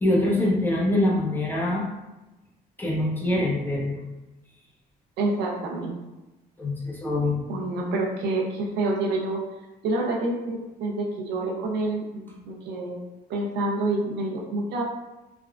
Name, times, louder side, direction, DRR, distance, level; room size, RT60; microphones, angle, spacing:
voice 1, 0.0-1.8 2.8-4.0 6.6-7.4, left 1 dB, 10° left, -4 dB, 0.7 m, -24 dB
voice 2, 5.2-6.0 7.5-9.4 9.8-13.0 13.3-14.8, right 2 dB, 80° right, -1 dB, 0.6 m, -27 dB
3.3 x 2.3 x 2.3 m, 1.0 s
cardioid pair, 110°, 17 cm